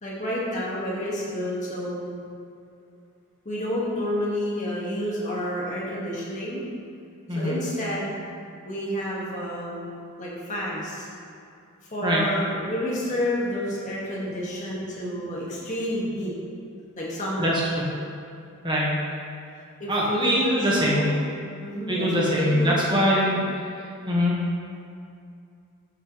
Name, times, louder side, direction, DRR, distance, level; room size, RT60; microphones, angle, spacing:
voice 1, 0.0-2.2 3.5-6.6 7.4-8.2 8.7-11.1 11.9-16.3 17.0-17.6 19.8-21.1 21.6-23.3, left 1 dB, 35° left, -6 dB, 2.1 m, -29 dB
voice 2, 7.3-7.6 12.0-12.2 17.4-17.8 18.6-19.0 19.9-21.1 21.9-23.4 24.1-24.4, equal, 20° right, -5 dB, 1.7 m, -23 dB
12.0 x 7.0 x 3.4 m, 2.4 s
head